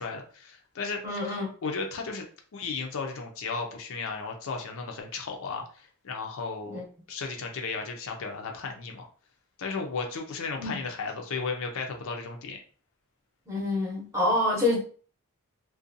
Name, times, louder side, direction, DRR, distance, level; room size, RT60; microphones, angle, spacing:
voice 1, 0.0-2.3 2.5-6.8 7.1-9.1 9.6-12.6, left 4 dB, 65° left, 3 dB, 0.5 m, -35 dB
voice 2, 1.0-1.5 6.7-6.8 10.6-10.8 13.5-14.8, left 2 dB, 15° right, -2 dB, 0.7 m, -27 dB
2.5 x 2.2 x 2.5 m, 0.42 s
head